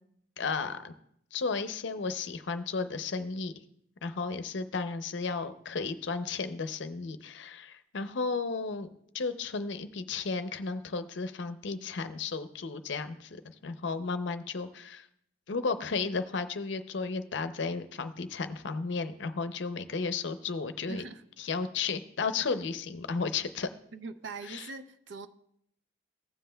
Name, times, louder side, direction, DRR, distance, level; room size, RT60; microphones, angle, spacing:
voice 1, 0.4-0.9 1.3-3.5 4.0-8.9 9.1-15.1 15.5-21.0 21.4-23.7 24.4-24.7, left 4 dB, 65° left, 11 dB, 0.6 m, -34 dB
voice 2, 20.9-21.2 23.9-25.3, right 4 dB, 70° right, 11 dB, 0.5 m, -42 dB
15.5 x 7.5 x 2.2 m, 0.72 s
head